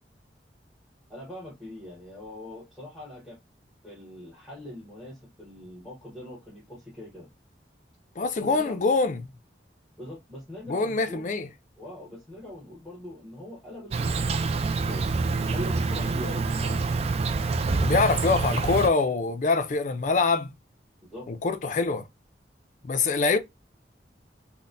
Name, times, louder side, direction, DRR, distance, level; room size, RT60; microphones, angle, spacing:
voice 1, 1.1-3.4 3.8-7.3 8.4-8.8 10.0-11.3 11.8-16.9 21.1-21.3, left 1 dB, 5° left, 1.0 m, -42 dB
voice 2, 8.2-9.3 10.7-11.5 17.8-20.5 21.3-22.1 22.8-23.4, left 4 dB, 45° left, 0.4 m, -24 dB
Insect, 13.9-18.9, right 4 dB, 35° right, 0.3 m, -26 dB
4.0 x 2.1 x 2.5 m
head